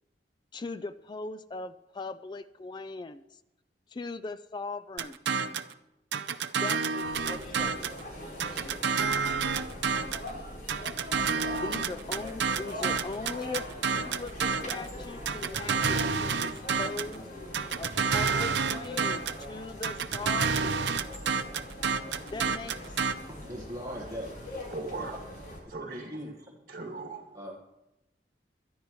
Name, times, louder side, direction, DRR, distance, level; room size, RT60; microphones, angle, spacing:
voice 1, 0.5-3.4 3.9-5.2 6.6-7.9 11.5-17.3 17.8-20.9 22.3-23.0, left 3 dB, 25° left, 12 dB, 0.3 m, -40 dB
sound 1, 5.0-5.7 6.1-8.0 8.4-10.3 10.7-14.9 15.3-17.2 17.5-19.4 19.8-23.1, right 5 dB, 85° right, 0.7 m, -29 dB
sound 2, 7.0-25.6, left 1 dB, 55° left, 4.1 m, -42 dB
voice 2, 23.3-24.4 24.8-25.0 25.9-26.6 27.3-27.6, equal, 20° right, 0 dB, 1.5 m, -40 dB
voice 3, 24.7-25.2 25.7-26.2 26.7-27.4, right 3 dB, 55° right, 2 dB, 2.1 m, -39 dB
23.5 x 11.0 x 3.1 m, 0.92 s
head